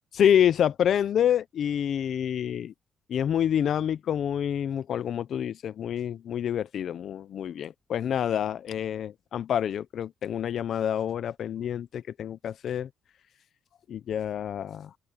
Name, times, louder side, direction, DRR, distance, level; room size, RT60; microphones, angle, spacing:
voice 1, 0.1-2.7 3.1-12.9 13.9-14.9, left 9 dB, 65° left, 0.7 m, -27 dB
open air
cardioid pair, 90°, 0 cm